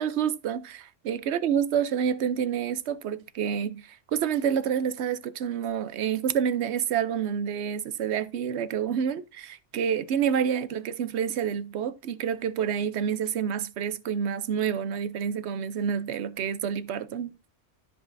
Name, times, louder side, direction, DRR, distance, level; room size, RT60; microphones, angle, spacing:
voice 1, 0.0-17.4, right 8 dB, 70° right, 0.9 m, -28 dB
13.5 x 5.2 x 2.6 m
omnidirectional pair, 1.2 m